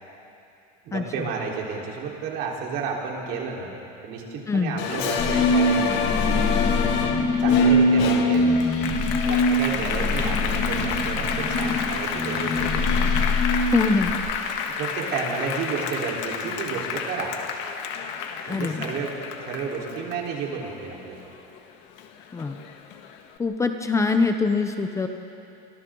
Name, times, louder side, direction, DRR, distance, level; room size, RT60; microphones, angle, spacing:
voice 1, 0.8-3.7 4.0-6.5 7.4-8.5 9.2-13.2 14.8-17.3 18.5-19.1 19.5-21.2, right 5 dB, 55° right, -2 dB, 4.1 m, -31 dB
voice 2, 4.5-4.8 13.7-14.2 18.5-18.9 22.3-22.6 23.4-25.1, left 4 dB, 15° left, 6 dB, 0.7 m, -23 dB
Applause, 4.8-21.6 22.0-23.2, left 7 dB, 65° left, 1.8 m, -30 dB
sound 1, 5.2-14.1, left 1 dB, 35° left, 3.4 m, -23 dB
30.0 x 24.5 x 3.9 m, 2.8 s
cardioid pair, 155°, 21 cm